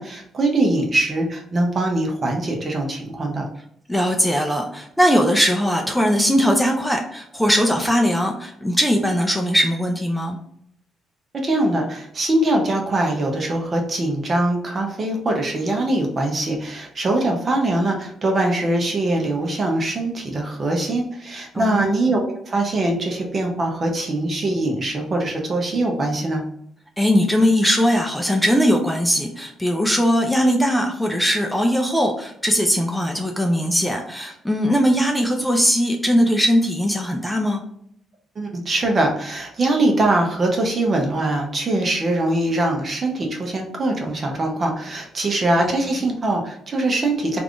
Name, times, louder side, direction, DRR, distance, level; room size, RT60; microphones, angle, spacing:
voice 1, 0.0-3.4 11.4-26.4 38.4-47.4, right 2 dB, 40° right, 1 dB, 0.9 m, -22 dB
voice 2, 3.9-10.4 21.5-22.0 27.0-37.6 45.6-45.7, equal, ahead, 1 dB, 0.5 m, -20 dB
3.4 x 2.5 x 3.4 m, 0.70 s
cardioid pair, 90°, 0 cm